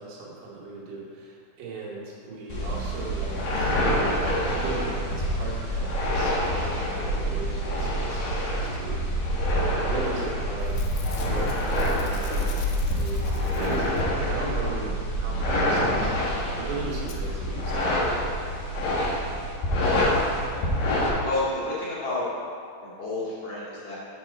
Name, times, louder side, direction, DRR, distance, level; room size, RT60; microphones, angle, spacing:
voice 1, 0.0-10.8 11.2-11.5 11.8-18.3, right 3 dB, 85° right, -5 dB, 4.0 m, -37 dB
sound 1, 2.5-21.1, equal, 65° left, 3.1 m, -26 dB
Packing tape duct tape / Tearing, 10.1-10.3 10.6-14.2 16.1-16.2 16.4-16.5 17.1-17.2 17.8-17.9 18.1-18.2, left 7 dB, 85° left, 2.3 m, -46 dB
voice 2, 19.7-20.1 20.5-20.6 21.2-22.3 22.8-24.0, left 2 dB, 40° left, -9 dB, 2.5 m, -31 dB
9.2 x 6.1 x 4.2 m, 2.3 s
omnidirectional pair, 5.5 m